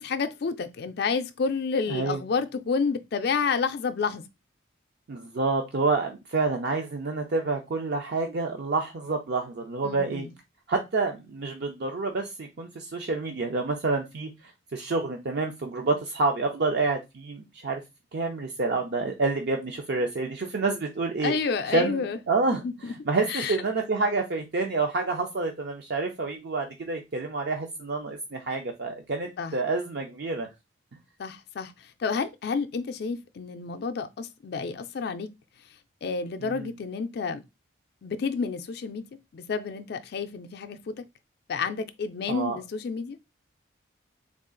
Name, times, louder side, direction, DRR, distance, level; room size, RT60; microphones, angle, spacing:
voice 1, 0.0-4.2 9.8-10.3 21.2-22.2 22.6-22.9 23.3-23.6 29.4-29.6 31.2-31.7 32.0-35.3 36.0-37.4 38.0-39.0 39.3-41.0 41.5-43.2, left 5 dB, 55° left, 0.4 m, -30 dB
voice 2, 1.9-2.2 5.1-10.2 10.7-14.3 14.7-17.8 18.1-21.3 21.7-30.5 36.4-36.7 42.3-42.6, right 3 dB, 55° right, 0.5 m, -28 dB
3.6 x 2.4 x 3.7 m
head